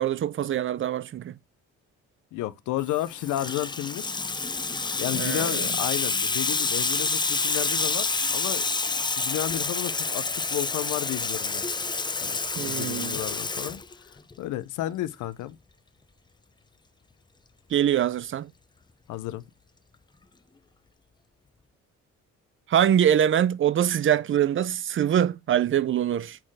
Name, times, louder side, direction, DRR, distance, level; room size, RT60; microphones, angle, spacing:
voice 1, 0.0-1.4 5.1-5.7 12.6-13.2 17.7-18.5 22.7-26.4, right 10 dB, 45° right, 0.5 m, -24 dB
voice 2, 2.3-4.1 4.9-8.6 9.0-10.2 10.5-11.6 12.2-13.8 14.4-15.6 19.1-19.4, left 14 dB, 85° left, 0.6 m, -32 dB
Water tap faucet / Sink (filling or washing), 2.9-14.3, left 4 dB, 15° left, 0.5 m, -28 dB
5.8 x 4.3 x 4.7 m
cardioid pair, 90°, 30 cm